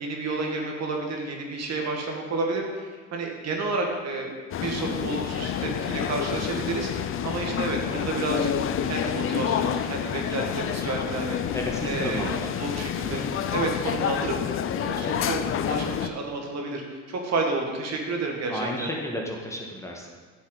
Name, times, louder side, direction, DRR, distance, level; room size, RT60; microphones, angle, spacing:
voice 1, 0.0-11.4 11.8-12.3 12.6-13.2 13.5-14.4 14.8-18.9, right 3 dB, 45° right, 1 dB, 2.0 m, -30 dB
sound 1, 4.5-16.1, left 9 dB, 35° left, 0.6 m, -28 dB
voice 2, 11.5-12.5 13.0-13.3 18.5-20.1, left 1 dB, 10° left, -1 dB, 1.5 m, -32 dB
10.0 x 7.3 x 4.1 m, 1.5 s
hypercardioid pair, 80°, 38 cm